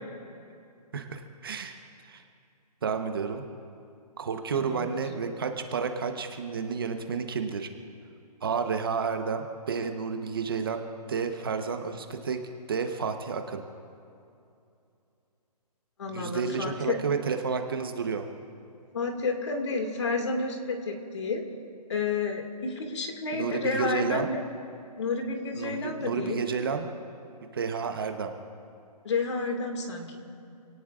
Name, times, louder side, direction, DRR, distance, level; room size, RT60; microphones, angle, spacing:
voice 1, 0.9-2.2 2.8-3.4 4.2-7.7 8.4-10.8 11.1-12.4 12.7-13.6 16.1-18.3 23.3-24.3 25.5-26.9 27.4-28.3, right 5 dB, 35° right, 6 dB, 1.0 m, -31 dB
voice 2, 4.6-5.0 16.0-17.0 18.9-21.4 21.9-24.4 25.0-26.4 29.0-30.2, left 4 dB, 45° left, 3 dB, 2.0 m, -30 dB
28.5 x 18.0 x 2.5 m, 2.6 s
hypercardioid pair, 175°, 21 cm